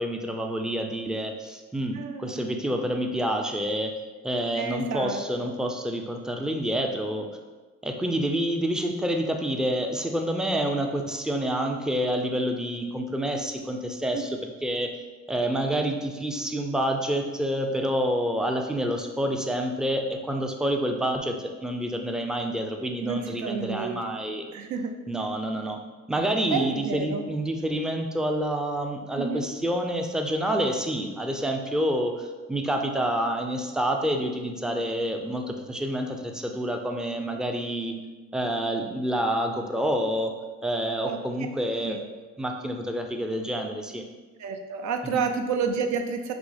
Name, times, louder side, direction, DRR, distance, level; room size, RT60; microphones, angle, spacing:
voice 1, 0.0-3.9 4.2-7.3 7.8-14.9 15.3-24.5 25.1-25.8 26.1-37.9 38.3-40.3 40.6-42.0 42.4-44.0 45.1-45.2, right 1 dB, ahead, 3 dB, 0.4 m, -28 dB
voice 2, 1.9-2.6 4.5-5.5 14.1-14.3 23.0-24.0 24.5-24.9 26.5-27.2 29.2-29.4 41.1-41.2 41.8-42.0 44.4-46.3, right 5 dB, 70° right, 5 dB, 0.5 m, -30 dB
6.0 x 2.0 x 3.3 m, 1.3 s
cardioid pair, 90°, 30 cm